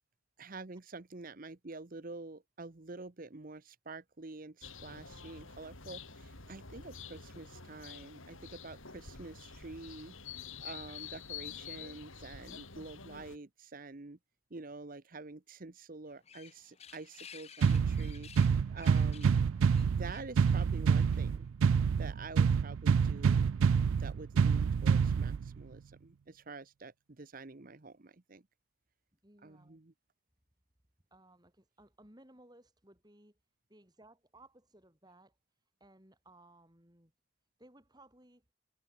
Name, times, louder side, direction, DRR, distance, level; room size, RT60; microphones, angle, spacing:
voice 1, 0.4-14.2 14.5-19.4 20.0-21.5 22.0-23.5 23.9-28.5 29.4-29.9, right 3 dB, 40° right, 0.9 m, -48 dB
sound 1, 4.6-13.4, left 6 dB, 75° left, 4.8 m, -48 dB
sound 2, 16.1-21.5, left 7 dB, 30° left, 1.0 m, -55 dB
sound 3, 17.6-25.6, right 6 dB, 80° right, 0.4 m, -27 dB
voice 2, 29.2-29.8 31.1-33.4 33.7-35.4 35.8-37.1 37.6-38.4, right 1 dB, 20° right, 5.1 m, -60 dB
head